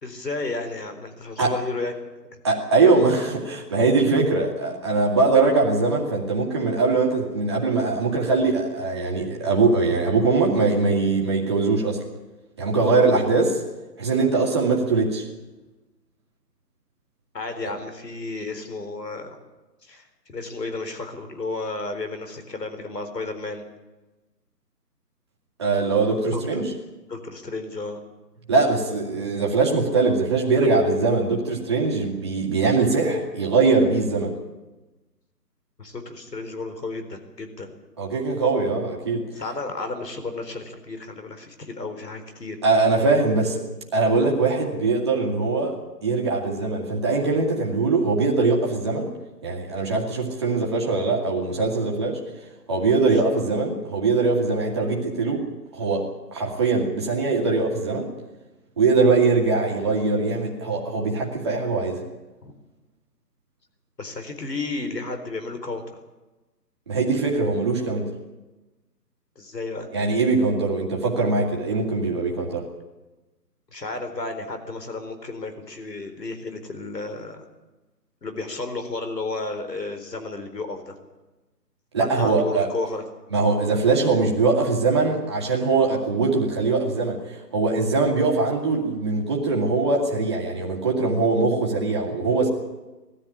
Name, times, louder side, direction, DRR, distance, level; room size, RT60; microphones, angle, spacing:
voice 1, 0.0-1.9 2.3-2.4 17.3-19.4 19.8-23.7 26.3-26.6 27.1-28.0 35.8-37.7 39.3-42.6 62.4-62.5 64.0-65.8 69.4-69.9 73.7-77.4 78.2-81.0 82.2-83.0, left 3 dB, 75° left, 7 dB, 4.2 m, -32 dB
voice 2, 2.4-12.0 12.6-13.6 14.0-15.3 25.6-26.7 28.5-34.3 38.0-39.3 42.6-43.6 43.9-45.8 46.0-49.1 49.4-52.2 52.7-55.5 55.7-56.0 56.3-58.1 58.8-62.0 66.9-68.1 69.9-72.7 81.9-82.7 83.3-92.5, right 3 dB, 15° right, -1 dB, 2.0 m, -22 dB
20.0 x 13.5 x 10.0 m, 1.1 s
hypercardioid pair, 175°, 49 cm